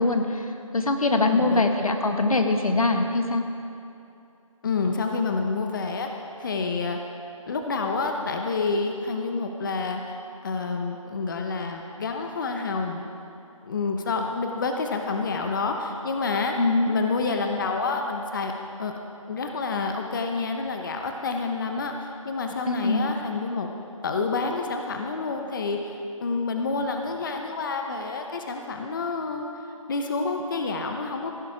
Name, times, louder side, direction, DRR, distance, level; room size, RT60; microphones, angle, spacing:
voice 1, 0.0-3.4 16.6-16.9 22.7-23.1, left 2 dB, 85° left, 5 dB, 1.6 m, -23 dB
voice 2, 1.1-1.9 4.6-6.1 6.4-7.0 7.5-10.2 10.4-13.0 13.6-16.5 16.9-18.5 18.8-18.9 19.3-23.7 24.0-29.4 29.9-31.3, left 4 dB, 35° left, 4 dB, 0.8 m, -28 dB
15.5 x 11.5 x 5.0 m, 2.7 s
figure-of-eight pair, 165°, 18 cm